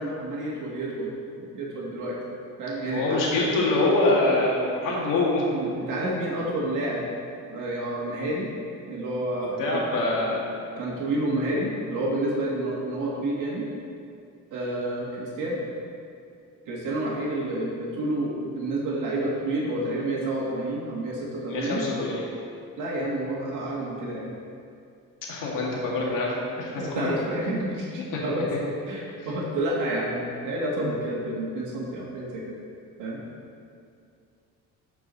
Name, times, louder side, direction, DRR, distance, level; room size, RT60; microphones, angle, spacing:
voice 1, 0.0-2.2 2.6-3.2 5.5-7.1 7.5-8.5 8.9-9.9 10.7-13.7 14.5-15.6 16.6-21.8 22.8-24.3 26.8-28.5 28.9-32.6 33.0-33.2, right 1 dB, 70° right, -4 dB, 1.6 m, -29 dB
voice 2, 2.8-5.4 9.6-10.5 21.5-22.3 25.3-27.1 28.1-28.2, left 2 dB, 80° left, -4 dB, 2.1 m, -25 dB
13.0 x 4.7 x 4.0 m, 2.4 s
cardioid pair, 145°, 32 cm